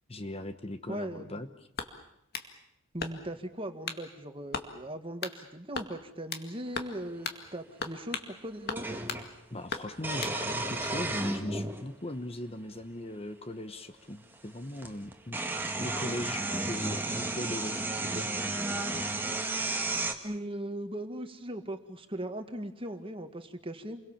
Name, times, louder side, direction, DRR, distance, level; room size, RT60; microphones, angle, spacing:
voice 1, 0.1-1.7 9.5-15.4 15.8-17.8 18.1-18.3, left 1 dB, 30° left, 9 dB, 1.1 m, -39 dB
voice 2, 0.9-1.4 2.9-8.8 20.2-24.0, right 1 dB, 25° right, 7 dB, 1.9 m, -39 dB
sound 1, 1.7-2.5 3.0-3.4 3.9-4.1 4.5-4.7 5.2-5.4 5.7-6.5 6.8-7.0 7.2-7.4 7.8-8.3 8.7-9.2 9.7-10.4, left 5 dB, 50° left, 2.1 m, -37 dB
sound 2, 7.1-7.2 8.8-9.3 10.0-11.8 12.8-12.9 14.3-14.4 14.8-20.1, right 2 dB, 10° right, 1.9 m, -33 dB
29.0 x 22.5 x 7.3 m, 0.79 s
head